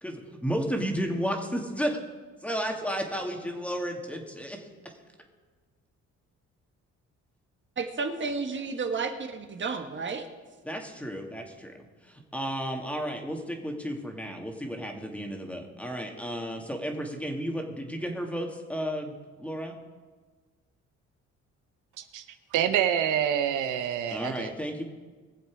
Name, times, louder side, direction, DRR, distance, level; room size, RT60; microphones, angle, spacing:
voice 1, 0.0-2.0 2.4-4.6 10.6-11.7 12.0-19.7 24.1-24.8, equal, 5° left, 2 dB, 2.2 m, -33 dB
voice 2, 7.8-10.2, right 4 dB, 40° right, 5 dB, 1.6 m, -32 dB
voice 3, 22.5-24.5, right 9 dB, 90° right, 9 dB, 0.9 m, -26 dB
21.0 x 7.4 x 4.8 m, 1.4 s
cardioid pair, 90°, 30 cm